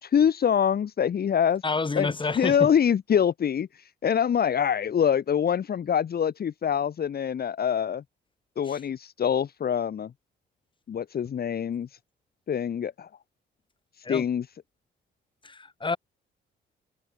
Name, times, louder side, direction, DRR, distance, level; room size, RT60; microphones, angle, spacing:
voice 1, 0.0-1.6 2.0-8.0 8.6-10.1 10.9-11.9 12.5-13.1 14.1-14.5, left 8 dB, 50° left, 2.0 m, -25 dB
voice 2, 1.6-2.7 8.7-8.8 14.0-14.2 15.4-16.0, left 3 dB, 25° left, 3.8 m, -29 dB
open air
cardioid pair, 90°, 20 cm